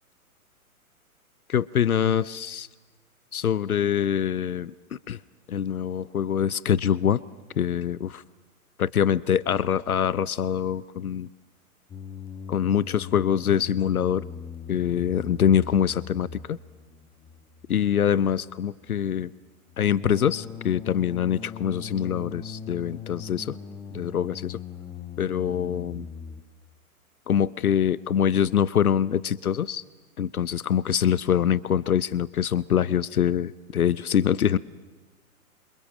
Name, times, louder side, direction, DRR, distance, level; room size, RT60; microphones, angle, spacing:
voice 1, 1.5-2.7 3.3-5.2 5.5-7.2 7.6-8.2 8.8-11.3 12.5-14.2 14.7-16.6 17.7-19.3 19.8-23.6 23.9-24.6 25.2-26.1 27.3-29.8 30.2-34.6, left 9 dB, 75° left, 21 dB, 0.9 m, -24 dB
sound 1, 11.9-26.4, left 7 dB, 10° left, 1.2 m, -40 dB
28.0 x 27.0 x 7.4 m, 1.3 s
figure-of-eight pair, 120°, 44 cm